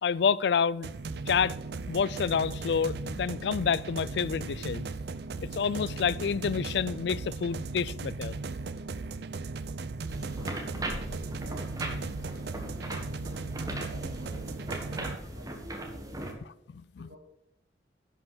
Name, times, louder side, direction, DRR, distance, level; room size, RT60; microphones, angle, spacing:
voice 1, 0.0-0.9 1.3-1.6 1.9-4.9 5.5-8.3 16.7-17.1, left 6 dB, 65° left, 0.3 m, -28 dB
sound 1, 0.8-15.1, right 3 dB, 60° right, 0.5 m, -37 dB
sound 2, 10.1-16.3, right 1 dB, 20° right, 1.5 m, -38 dB
voice 2, 10.1-15.0 15.3-16.4 17.0-17.2, equal, 80° right, 4.3 m, -53 dB
11.0 x 5.5 x 6.1 m
head